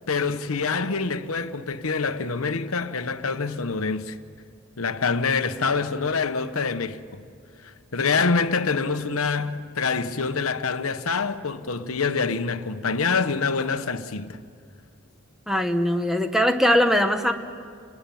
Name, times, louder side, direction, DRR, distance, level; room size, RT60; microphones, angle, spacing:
voice 1, 0.1-4.2 4.8-7.2 7.6-14.4, left 4 dB, 80° left, 1.0 m, -26 dB
voice 2, 15.5-17.3, equal, ahead, 1.2 m, -21 dB
29.0 x 20.0 x 9.2 m
head